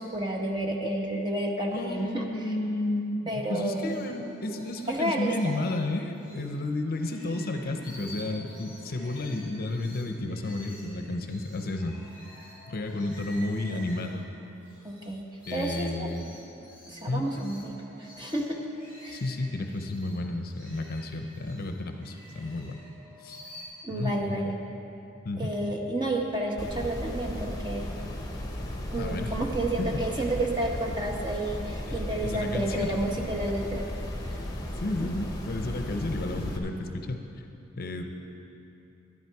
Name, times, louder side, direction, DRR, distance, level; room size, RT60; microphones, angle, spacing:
voice 1, 0.0-2.5 3.3-4.0 4.9-5.6 14.8-15.2 15.5-16.4 16.9-18.6 19.0-19.2 23.8-24.6 25.4-27.9 28.9-33.8 34.3-34.4 35.0-35.1, right 1 dB, 20° right, 1 dB, 1.0 m, -31 dB
voice 2, 1.7-12.0 12.7-14.2 15.5-16.2 17.1-17.4 19.1-22.8 23.2-23.4 23.9-24.5 25.2-25.5 29.0-29.4 29.8-29.9 32.2-32.9 34.8-37.5 37.8-38.0, left 2 dB, 45° left, 5 dB, 0.7 m, -32 dB
sound 1, 3.7-6.6 6.9-15.1 15.3-23.6, left 1 dB, 5° right, 3.0 m, -49 dB
sound 2, 26.6-36.6, left 1 dB, 20° left, 0.9 m, -35 dB
12.0 x 11.0 x 4.7 m, 2.8 s
head